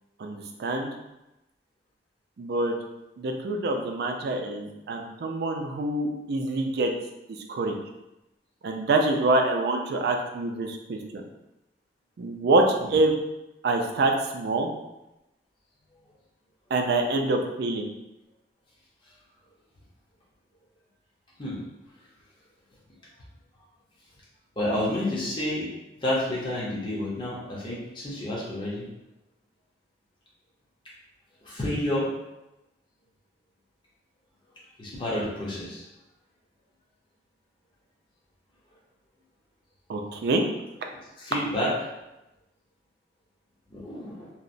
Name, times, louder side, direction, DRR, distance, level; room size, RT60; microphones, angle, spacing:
voice 1, 0.2-0.9 2.4-2.7 3.2-6.9 7.3-7.8 8.6-11.2 12.2-13.1 13.6-14.7 16.7-17.8 39.9-40.4, right 2 dB, 60° right, 3 dB, 0.3 m, -26 dB
voice 2, 24.6-25.7 26.0-28.9 31.4-32.1 34.8-35.8 41.2-41.7 43.7-44.3, left 1 dB, 25° left, -7 dB, 0.7 m, -29 dB
2.8 x 2.0 x 2.5 m, 0.95 s
head